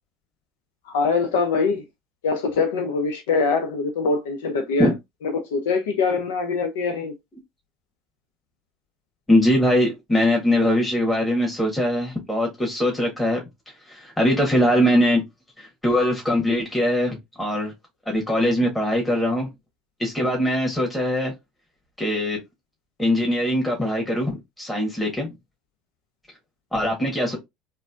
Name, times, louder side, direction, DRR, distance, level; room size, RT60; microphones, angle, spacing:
voice 1, 0.9-1.8 2.2-4.9 5.2-7.1, left 4 dB, 65° left, 0.6 m, -23 dB
voice 2, 9.3-13.4 13.9-15.2 15.6-17.7 18.1-19.5 20.0-21.3 22.0-22.4 23.0-25.3 26.7-27.4, left 1 dB, 10° left, 1.5 m, -21 dB
4.0 x 2.6 x 2.5 m
figure-of-eight pair, 65°, 0 cm